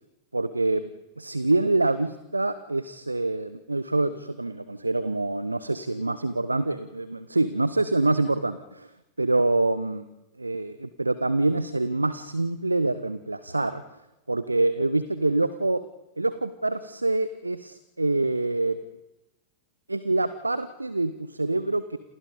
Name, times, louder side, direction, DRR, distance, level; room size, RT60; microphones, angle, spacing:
voice 1, 0.3-0.8 1.2-8.9 9.2-10.0 10.4-13.8 14.3-15.8 16.2-18.8 19.9-22.0, right 2 dB, 80° right, 15 dB, 0.9 m, -26 dB
28.5 x 28.0 x 5.3 m, 0.97 s
figure-of-eight pair, 90°, 0 cm